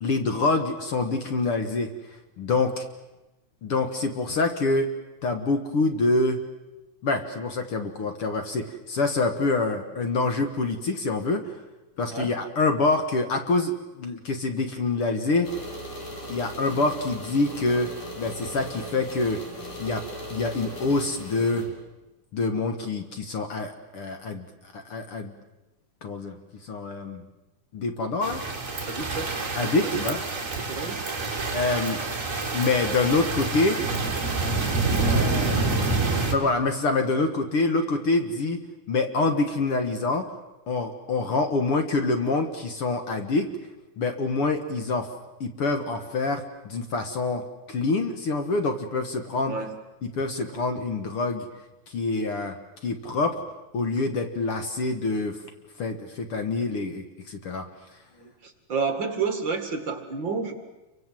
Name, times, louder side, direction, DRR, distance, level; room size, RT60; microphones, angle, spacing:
voice 1, 0.0-1.9 2.4-2.9 3.6-4.9 5.2-6.4 7.0-11.6 12.0-15.5 16.3-19.4 19.8-20.0 20.3-21.6 22.3-24.5 24.7-25.3 26.0-26.4 26.6-27.2 27.7-28.4 29.5-30.2 31.5-32.0 32.5-33.8 35.0-35.6 36.3-38.6 38.9-40.3 40.7-43.5 44.0-45.1 45.4-49.6 50.0-51.5 51.9-52.6 52.8-53.4 53.7-55.4 55.8-57.7, left 3 dB, 55° left, 6 dB, 2.2 m, -26 dB
sound 1, 15.4-21.7, equal, 90° left, 6.3 m, -38 dB
sound 2, 28.2-36.3, right 3 dB, 25° right, 2.7 m, -27 dB
voice 2, 28.9-29.3 29.8-30.0 30.7-31.0 49.5-49.7 58.1-60.5, right 5 dB, 40° right, 7 dB, 2.6 m, -30 dB
28.0 x 24.5 x 7.7 m, 1.0 s
omnidirectional pair, 3.4 m